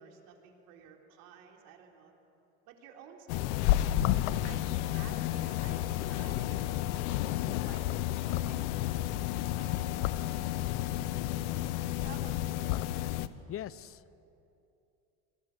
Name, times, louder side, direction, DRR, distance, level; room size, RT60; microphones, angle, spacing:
voice 1, 0.0-2.2 2.7-3.7 4.4-6.8 7.6-9.1 9.4-12.6, right 7 dB, 70° right, 1 dB, 3.8 m, -53 dB
sound 1, 3.3-13.3, left 14 dB, 80° left, 1.0 m, -31 dB
voice 2, 4.0-4.3 13.5-14.2, left 11 dB, 40° left, 18 dB, 0.8 m, -41 dB
28.0 x 21.0 x 8.5 m, 2.8 s
supercardioid pair, 90°, 35 cm